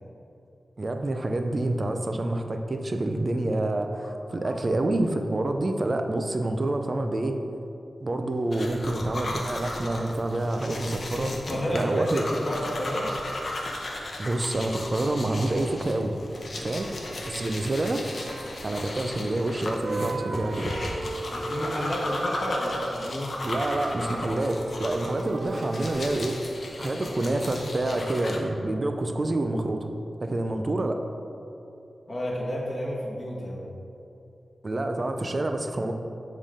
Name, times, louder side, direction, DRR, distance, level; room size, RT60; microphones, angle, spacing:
voice 1, 0.8-7.4 8.0-12.2 14.2-16.2 16.5-16.9 17.3-18.0 18.6-20.8 23.4-26.4 26.8-29.9 30.2-31.0 34.6-35.9, right 2 dB, 35° right, 5 dB, 0.5 m, -27 dB
sound 1, 8.5-28.4, left 1 dB, 55° left, 0.8 m, -35 dB
voice 2, 11.1-13.1 21.3-23.3 32.1-33.6, equal, 25° left, -5 dB, 1.5 m, -31 dB
sound 2, 13.2-13.3 16.7-19.5 19.8-22.7 23.3-26.3, right 3 dB, 85° right, 0.5 m, -38 dB
7.4 x 3.7 x 4.9 m, 2.8 s
wide cardioid pair, 125°, 0 cm